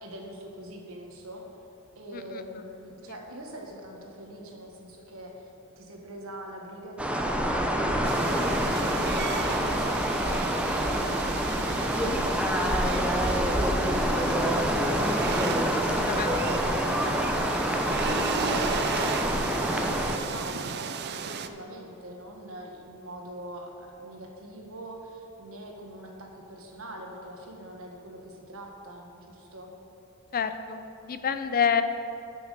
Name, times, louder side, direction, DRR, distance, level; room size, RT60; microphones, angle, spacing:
voice 1, 0.0-1.4 1.9-5.5 5.8-29.7, right 1 dB, 70° right, 1 dB, 1.5 m, -43 dB
sound 1, 7.0-20.2, equal, 5° right, 0.7 m, -26 dB
sound 2, 8.0-21.5, right 6 dB, 50° right, 0.5 m, -35 dB
voice 2, 30.3-31.8, left 7 dB, 40° left, 10 dB, 0.5 m, -28 dB
10.0 x 6.1 x 6.7 m, 2.9 s
head